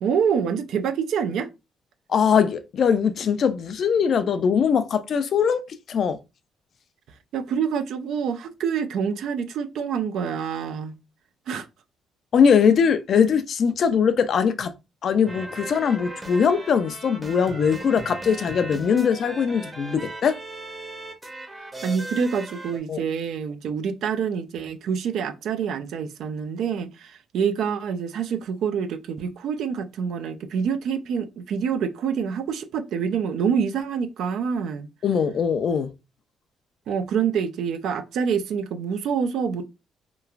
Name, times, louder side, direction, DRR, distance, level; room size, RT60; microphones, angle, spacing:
voice 1, 0.0-1.5 7.3-10.9 11.5-11.7 21.8-34.9 36.9-39.7, right 7 dB, 75° right, 0.4 m, -26 dB
voice 2, 2.1-6.2 12.3-14.7 15.0-20.4 22.9-23.0 35.0-35.9, left 7 dB, 60° left, 0.4 m, -21 dB
sound 1, 15.3-22.8, right 1 dB, 20° right, 0.7 m, -38 dB
3.0 x 2.3 x 2.4 m
cardioid pair, 90°, 0 cm